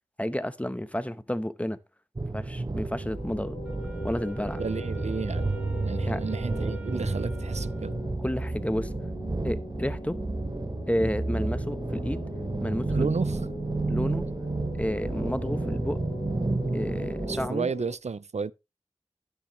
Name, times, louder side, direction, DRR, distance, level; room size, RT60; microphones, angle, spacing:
voice 1, 0.2-1.8 2.3-3.6 4.0-4.6 6.0-6.2 8.2-8.9 9.4-10.2 10.9-12.2 12.6-13.1 13.9-14.3 14.8-16.0 16.7-17.7, equal, 10° left, 0.9 m, -31 dB
sound 1, 2.2-17.5, right 2 dB, 35° right, 0.7 m, -31 dB
sound 2, 3.0-18.0, left 3 dB, 65° left, 0.8 m, -42 dB
Wind instrument woodwind instrument, 3.6-8.3, right 1 dB, 10° right, 2.5 m, -48 dB
voice 2, 4.6-5.5 5.8-8.0 12.9-13.4 17.3-18.5, right 5 dB, 85° right, 0.4 m, -32 dB
10.5 x 10.0 x 3.1 m
wide cardioid pair, 45°, 11 cm